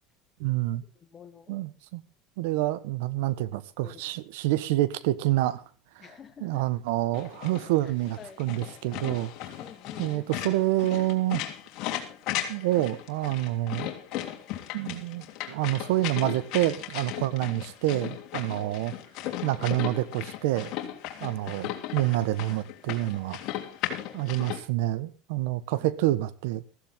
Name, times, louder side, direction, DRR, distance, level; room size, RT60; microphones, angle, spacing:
voice 1, 0.4-0.8 1.5-2.0 2.4-5.6 6.0-6.1 6.4-9.3 10.0-11.4 12.5-13.9 14.7-18.9 19.4-20.7 21.2-23.4 24.1-26.6, right 16 dB, 80° right, 1.1 m, -27 dB
voice 2, 1.0-1.6 3.5-4.0 6.0-6.7 7.8-8.5 9.6-10.2 18.6-18.9 21.1-21.4 25.7-25.9, left 7 dB, 25° left, 1.2 m, -49 dB
sound 1, 7.1-24.6, left 12 dB, 55° left, 3.0 m, -36 dB
15.0 x 15.0 x 3.6 m
supercardioid pair, 130°, 0 cm